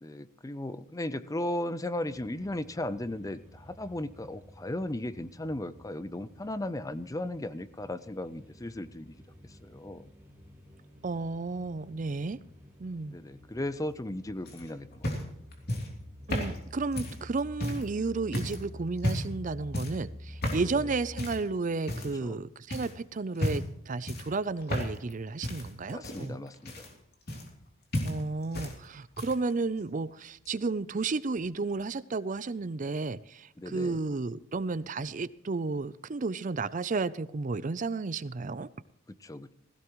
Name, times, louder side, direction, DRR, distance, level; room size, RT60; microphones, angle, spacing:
voice 1, 0.0-9.1 9.4-10.1 13.1-15.1 20.6-20.9 22.2-22.4 25.9-26.9 33.6-34.0 39.1-39.5, left 1 dB, 15° left, 14 dB, 0.5 m, -36 dB
sound 1, 2.0-21.3, left 1 dB, 10° right, 3.0 m, -50 dB
voice 2, 11.0-12.4 12.8-13.2 16.3-26.4 28.0-38.7, right 3 dB, 40° right, 17 dB, 0.5 m, -32 dB
sound 2, 14.5-17.9 18.3-18.6 19.0-19.4 19.7-20.0 20.4-20.7 21.2-21.5 21.9-22.4 22.7-22.9 23.4-23.8 24.1-25.1 25.4-27.7 27.9-28.8 29.0-29.5 30.5-30.6, left 1 dB, 50° left, 3.1 m, -33 dB
16.0 x 16.0 x 3.1 m, 0.76 s
head